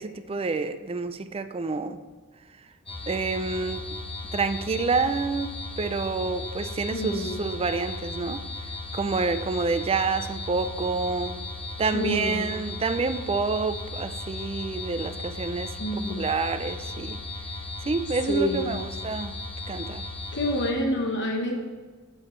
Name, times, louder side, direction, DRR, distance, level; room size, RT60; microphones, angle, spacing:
voice 1, 0.0-2.0 3.1-3.8 4.3-8.4 8.9-11.4 11.8-17.2 17.8-19.4 19.7-20.0, right 4 dB, 25° right, 10 dB, 0.4 m, -28 dB
sound 1, 2.9-20.7, left 2 dB, 25° left, 1.2 m, -36 dB
voice 2, 6.9-7.4 11.9-12.5 15.8-16.2 18.3-18.8 20.3-21.6, equal, 55° left, 1 dB, 1.1 m, -27 dB
10.5 x 7.8 x 3.2 m, 1.4 s
head